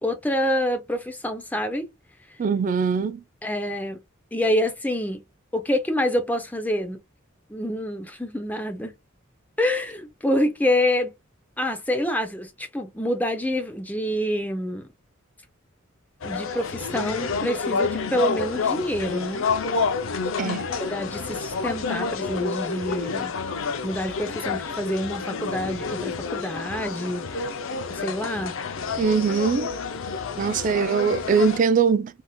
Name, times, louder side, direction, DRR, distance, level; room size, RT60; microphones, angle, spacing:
voice 1, 0.0-1.9 3.4-4.0 4.3-5.2 5.5-7.0 7.5-8.9 9.6-11.1 11.6-14.8 16.3-19.5 20.8-23.3 23.8-27.5 27.9-28.5, left 1 dB, 10° left, 0.6 m, -27 dB
voice 2, 2.4-3.2 20.4-20.7 29.0-29.7 30.4-32.2, right 5 dB, 40° right, 0.3 m, -22 dB
sound 1, 16.2-31.6, left 4 dB, 65° left, 0.5 m, -29 dB
3.5 x 2.7 x 2.3 m
head